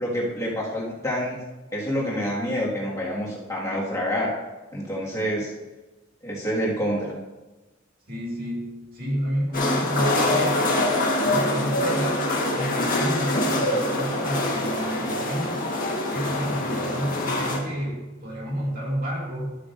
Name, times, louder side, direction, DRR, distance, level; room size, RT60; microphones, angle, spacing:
voice 1, 0.0-1.4 1.7-4.3 4.7-5.5 6.2-7.1, equal, 15° left, -6 dB, 1.9 m, -27 dB
voice 2, 8.1-10.8 11.2-12.3 12.5-15.6 16.1-19.6, equal, 50° right, -3 dB, 2.2 m, -30 dB
sound 1, 9.5-17.6, left 1 dB, 45° left, 1.5 m, -24 dB
12.0 x 8.2 x 2.6 m, 1.2 s
head